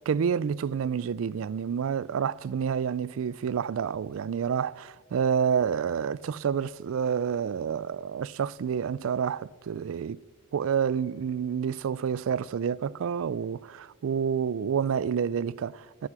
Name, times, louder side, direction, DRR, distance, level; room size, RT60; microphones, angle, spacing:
voice 1, 0.1-10.2 10.5-16.1, right 7 dB, 70° right, 0.3 m, -29 dB
18.5 x 12.0 x 4.9 m
head